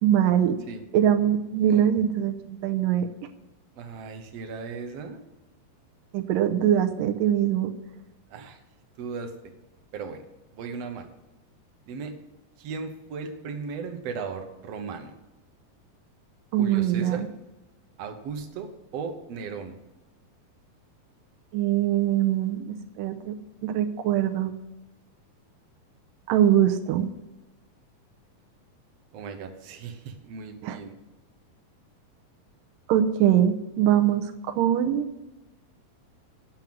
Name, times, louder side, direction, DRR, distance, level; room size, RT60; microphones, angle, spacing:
voice 1, 0.0-0.6 0.9-3.1 6.1-7.7 16.5-17.3 21.5-23.3 23.6-24.5 26.3-27.1 30.6-30.8 32.9-35.1, right 10 dB, 80° right, 6 dB, 2.4 m, -22 dB
voice 2, 3.8-5.2 8.3-8.6 9.0-9.3 9.9-10.2 10.5-11.1 11.9-12.1 12.6-15.2 16.6-17.2 18.0-19.8 29.1-31.0, right 5 dB, 60° right, 5 dB, 1.8 m, -36 dB
9.2 x 7.3 x 7.6 m, 1.0 s
omnidirectional pair, 4.1 m